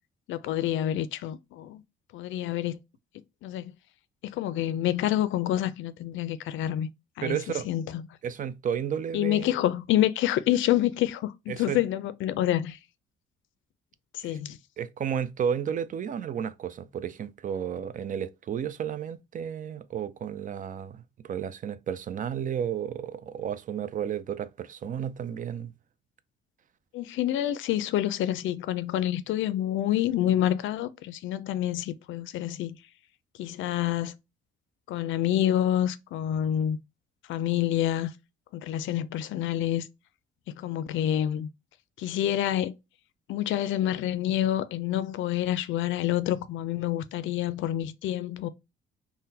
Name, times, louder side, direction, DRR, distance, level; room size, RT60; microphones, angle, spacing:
voice 1, 0.3-1.8 2.1-2.8 3.4-3.7 4.2-6.9 7.2-7.4 7.7-8.0 9.1-12.8 14.1-14.6 26.9-32.8 33.4-34.2 34.9-36.8 37.3-38.1 38.5-39.9 40.5-41.5 42.0-42.7 43.3-48.5, left 12 dB, 80° left, 0.4 m, -27 dB
voice 2, 7.2-7.7 8.2-9.5 11.5-11.8 14.2-14.4 14.8-25.7, right 8 dB, 40° right, 0.4 m, -32 dB
3.6 x 2.1 x 2.7 m
cardioid pair, 90°, 20 cm